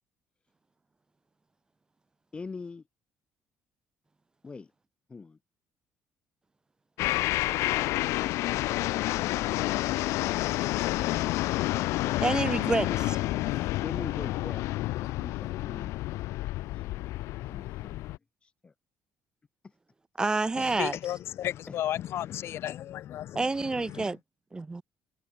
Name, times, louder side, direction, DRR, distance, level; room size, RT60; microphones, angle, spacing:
voice 1, 2.3-2.8 4.4-4.7 5.1-5.4 12.7-13.0 13.8-16.9 17.4-18.7 19.6-19.7 20.5-20.7 21.7-21.8, left 4 dB, 20° left, 1.8 m, -43 dB
sound 1, 7.0-18.2, left 18 dB, 80° left, 0.4 m, -29 dB
voice 2, 12.2-12.9 20.2-21.0 23.3-24.2 24.5-24.8, right 3 dB, 15° right, 2.5 m, -28 dB
voice 3, 20.6-24.2, left 12 dB, 60° left, 2.7 m, -34 dB
cardioid pair, 135°, 5 cm